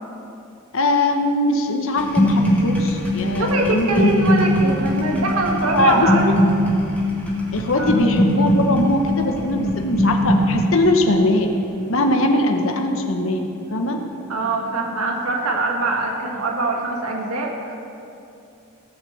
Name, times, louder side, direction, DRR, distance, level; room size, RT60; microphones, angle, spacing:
voice 1, 0.7-4.3 5.7-6.3 7.5-11.5 11.9-14.0, left 1 dB, 70° left, 3 dB, 1.1 m, -21 dB
sound 1, 2.0-13.8 14.1-14.5, left 1 dB, 5° left, 1.8 m, -21 dB
voice 2, 3.4-6.2 7.7-8.0 14.3-17.7, right 2 dB, 90° right, 0 dB, 1.7 m, -23 dB
17.5 x 6.2 x 7.2 m, 2.8 s
head